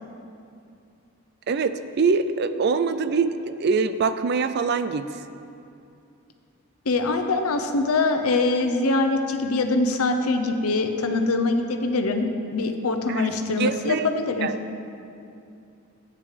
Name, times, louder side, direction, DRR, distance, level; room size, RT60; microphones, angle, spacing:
voice 1, 1.5-5.2 13.1-13.3 13.6-14.1 14.4-14.6, right 5 dB, 50° right, 11 dB, 0.4 m, -24 dB
voice 2, 6.9-14.5, left 3 dB, 80° left, 6 dB, 0.8 m, -23 dB
13.5 x 9.0 x 3.3 m, 2.6 s
head